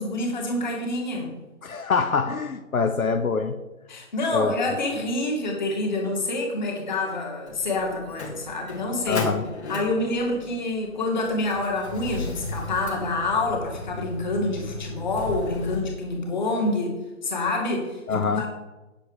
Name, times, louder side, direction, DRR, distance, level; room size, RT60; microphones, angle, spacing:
voice 1, 0.0-1.3 3.9-9.3 9.7-18.5, left 2 dB, 35° left, 0 dB, 2.3 m, -27 dB
voice 2, 1.6-3.6 4.3-4.5 9.1-9.4 18.1-18.5, left 5 dB, 85° left, 7 dB, 1.0 m, -24 dB
Motor vehicle (road), 7.5-15.8, left 2 dB, 50° left, 2.2 m, -36 dB
8.5 x 7.8 x 4.9 m, 1.1 s
figure-of-eight pair, 165°, 41 cm